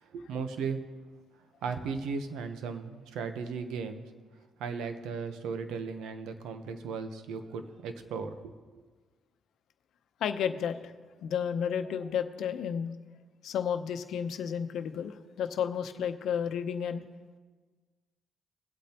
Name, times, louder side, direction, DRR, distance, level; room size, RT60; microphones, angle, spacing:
voice 1, 0.0-0.8 1.6-4.0 4.6-8.4 8.7-8.8, right 5 dB, 85° right, 8 dB, 0.9 m, -36 dB
voice 2, 10.2-10.9 11.2-12.9 13.4-17.1, left 8 dB, 75° left, 9 dB, 0.8 m, -32 dB
22.0 x 8.4 x 2.9 m, 1.4 s
cardioid pair, 90°, 0 cm